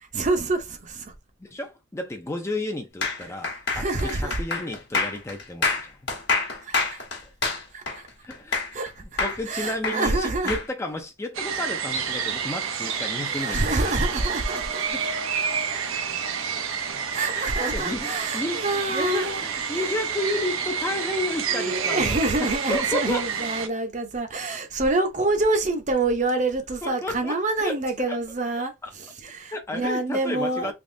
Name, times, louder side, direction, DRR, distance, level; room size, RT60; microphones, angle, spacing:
voice 1, 0.1-1.1 3.5-4.4 6.6-7.0 7.7-8.1 8.7-10.6 12.8-14.9 16.9-19.4 19.7-19.9 21.5-30.7, right 2 dB, 35° right, 0.6 m, -27 dB
voice 2, 1.4-6.0 8.2-8.6 9.2-14.0 14.9-15.1 17.3-23.2 26.8-27.8 28.1-28.2 29.5-30.7, left 1 dB, 15° left, 0.4 m, -32 dB
sound 1, 3.0-8.9 9.2-10.7, left 4 dB, 55° left, 1.0 m, -27 dB
sound 2, 11.3-23.7, right 7 dB, 85° right, 0.6 m, -29 dB
3.5 x 2.9 x 2.5 m
head